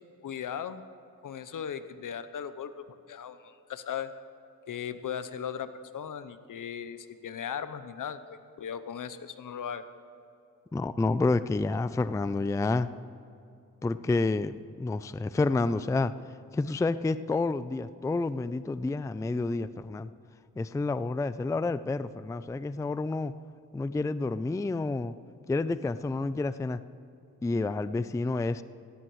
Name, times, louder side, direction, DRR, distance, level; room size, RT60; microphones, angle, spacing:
voice 1, 0.2-0.8 1.2-4.1 4.7-8.2 8.6-9.8, left 8 dB, 65° left, 12 dB, 0.8 m, -37 dB
voice 2, 10.7-12.9 13.8-16.1 16.5-20.1 20.6-23.3 23.7-25.1 25.5-26.8 27.4-28.6, left 3 dB, 10° left, 14 dB, 0.4 m, -29 dB
17.5 x 16.5 x 3.2 m, 2.6 s
cardioid pair, 60°, 34 cm